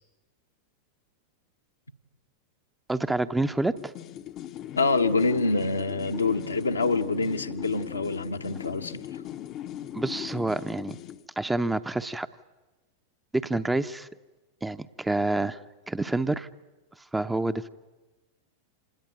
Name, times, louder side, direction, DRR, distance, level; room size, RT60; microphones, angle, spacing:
voice 1, 2.9-3.9 9.9-11.0 11.4-12.3 13.3-14.1 14.6-15.6 15.9-16.5 17.1-17.7, right 2 dB, 5° right, 0.8 m, -28 dB
sound 1, 3.8-11.3, left 11 dB, 35° left, 0.8 m, -39 dB
voice 2, 4.7-9.1, left 3 dB, 80° left, 1.3 m, -26 dB
27.5 x 19.5 x 9.1 m
figure-of-eight pair, 90°, 0 cm